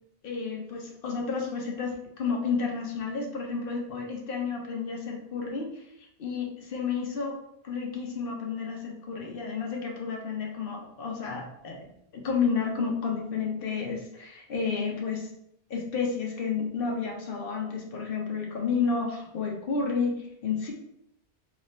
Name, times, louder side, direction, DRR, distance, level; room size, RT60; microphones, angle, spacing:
voice 1, 0.2-5.7 6.2-7.4 7.6-15.3 15.7-20.7, left 5 dB, 60° left, 1 dB, 0.8 m, -31 dB
2.9 x 2.7 x 3.2 m, 0.75 s
omnidirectional pair, 1.2 m